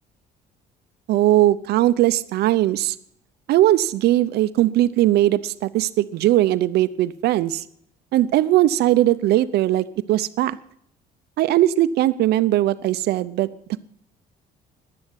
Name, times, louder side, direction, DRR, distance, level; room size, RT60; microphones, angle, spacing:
voice 1, 1.1-3.0 3.5-7.6 8.1-10.6 11.4-13.5, right 14 dB, 75° right, 14 dB, 0.7 m, -19 dB
11.0 x 11.0 x 9.0 m, 0.69 s
cardioid pair, 110°, 17 cm